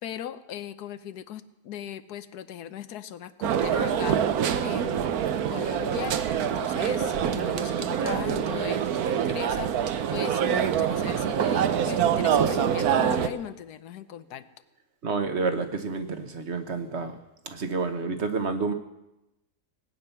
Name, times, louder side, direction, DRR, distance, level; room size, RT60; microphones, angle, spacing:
voice 1, 0.0-4.2 4.6-5.2 5.5-14.4, left 10 dB, 85° left, 13 dB, 1.3 m, -38 dB
sound 1, 3.4-13.3, right 8 dB, 75° right, 1.3 m, -25 dB
voice 2, 15.0-17.2 17.5-18.7, right 4 dB, 45° right, 8 dB, 1.4 m, -29 dB
18.0 x 9.6 x 7.0 m, 0.94 s
omnidirectional pair, 1.6 m